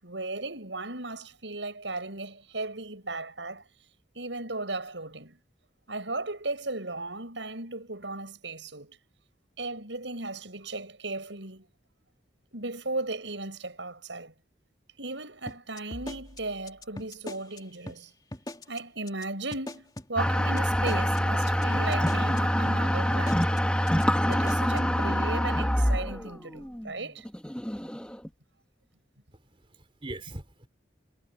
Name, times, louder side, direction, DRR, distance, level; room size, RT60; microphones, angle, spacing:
voice 1, 0.0-3.7 4.1-5.4 5.9-9.0 9.6-11.7 12.5-14.3 15.0-18.1 18.7-23.5 24.3-27.2, right 2 dB, 80° right, 6.6 m, -36 dB
sound 1, 15.5-17.6 17.9-18.0 18.3-18.8 19.1-19.3 19.5-22.4 22.7-22.8 23.1-23.6 23.9-24.0 24.3-24.9, left 1 dB, 20° left, 2.7 m, -40 dB
sound 2, 20.2-28.3, equal, 5° left, 1.5 m, -26 dB
voice 2, 29.3-30.7, right 2 dB, 30° right, 3.9 m, -42 dB
head